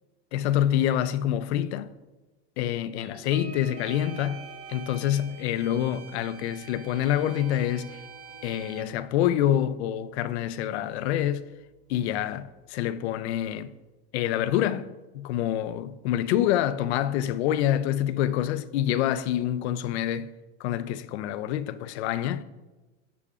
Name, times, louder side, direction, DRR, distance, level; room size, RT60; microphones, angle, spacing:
voice 1, 0.3-1.9 2.6-8.0 8.4-11.5 11.9-13.7 14.1-20.3 20.6-22.4, left 11 dB, 80° left, 0.6 m, -27 dB
sound 1, 3.0-11.9 12.3-12.5 12.8-13.1, right 3 dB, 60° right, 0.9 m, -50 dB
sound 2, 3.8-8.8, right 7 dB, 40° right, 1.6 m, -46 dB
15.5 x 5.9 x 2.4 m
supercardioid pair, 165°, 32 cm